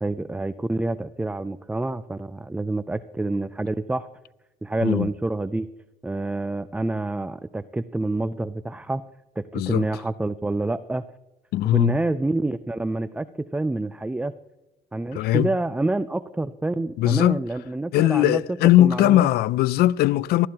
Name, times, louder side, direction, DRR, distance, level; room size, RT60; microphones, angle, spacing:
voice 1, 0.0-4.1 4.6-5.7 6.0-9.0 9.4-11.0 11.7-13.3 13.5-14.3 14.9-18.4 18.8-19.3, right 2 dB, 10° right, 0.4 m, -27 dB
voice 2, 4.8-5.1 9.5-9.9 11.5-12.0 15.1-15.5 17.0-17.4 17.9-20.5, left 14 dB, 70° left, 0.4 m, -19 dB
19.0 x 14.5 x 2.9 m
cardioid pair, 110°, 17 cm